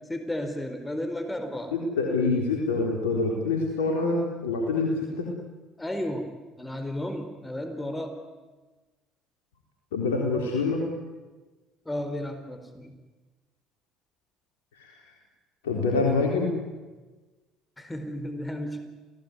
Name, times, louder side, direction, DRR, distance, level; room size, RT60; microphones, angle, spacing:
voice 1, 0.1-1.7 5.8-6.3 6.6-8.2 11.9-12.9 17.8-18.8, left 1 dB, 15° left, 7 dB, 4.4 m, -33 dB
voice 2, 1.7-5.3 9.9-10.8 14.7-15.0 15.6-16.5, left 3 dB, 80° left, 0 dB, 3.8 m, -26 dB
28.0 x 18.5 x 9.7 m, 1.2 s
hypercardioid pair, 60°, 0 cm